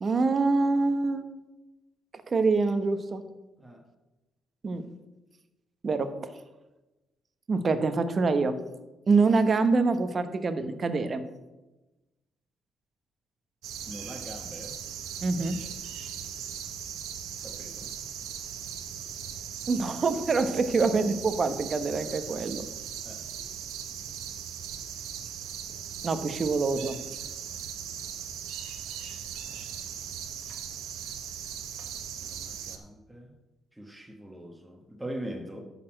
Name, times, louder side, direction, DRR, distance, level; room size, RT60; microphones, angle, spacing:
voice 1, 0.0-1.2 2.3-3.2 4.6-4.8 5.8-6.4 7.5-8.6 9.1-11.2 15.2-15.6 19.7-22.6 26.0-27.2, right 3 dB, 40° right, 10 dB, 0.9 m, -25 dB
sound 1, 13.6-32.8, right 8 dB, 90° right, 1.0 m, -39 dB
voice 2, 13.9-14.8 17.4-17.9 23.0-23.2 32.2-33.3 33.7-35.6, right 1 dB, 5° right, 2 dB, 1.4 m, -42 dB
11.5 x 4.2 x 7.6 m, 1.1 s
cardioid pair, 90°, 0 cm